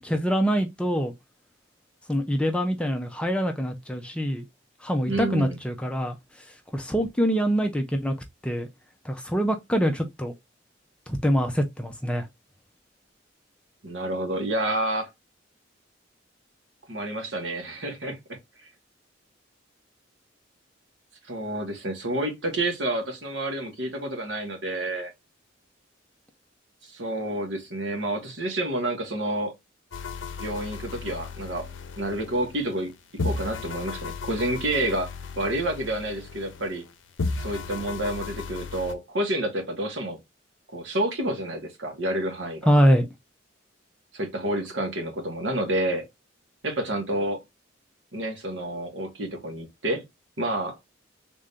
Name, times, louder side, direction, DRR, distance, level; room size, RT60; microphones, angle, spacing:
voice 1, 0.0-1.1 2.1-4.4 4.8-6.2 6.7-8.1 8.4-8.7 9.0-10.3 11.1-12.3 42.7-43.1, equal, 5° left, 0.5 m, -24 dB
voice 2, 5.0-5.6 13.8-15.1 16.9-18.4 21.3-25.1 26.9-29.5 30.4-31.7 32.0-32.9 33.2-35.1 35.4-36.8 37.4-40.2 40.7-42.7 44.1-46.1 46.6-47.4 48.1-50.0 50.4-50.8, right 1 dB, 70° right, 1.4 m, -29 dB
sound 1, 29.9-32.9 33.2-36.9 37.2-38.9, left 4 dB, 75° left, 0.6 m, -35 dB
3.7 x 2.6 x 3.4 m
head